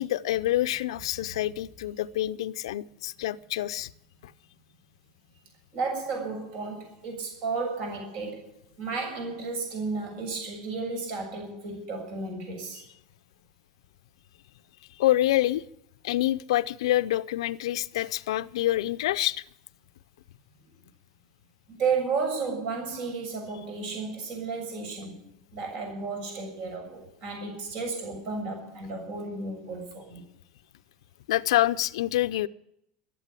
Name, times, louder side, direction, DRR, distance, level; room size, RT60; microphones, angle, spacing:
voice 1, 0.0-3.9 15.0-15.6 16.0-19.4 31.3-32.5, left 14 dB, 90° left, 0.6 m, -26 dB
voice 2, 5.7-12.8 21.7-30.2, right 4 dB, 55° right, 7.1 m, -33 dB
13.5 x 11.5 x 8.3 m
supercardioid pair, 135°, 3 cm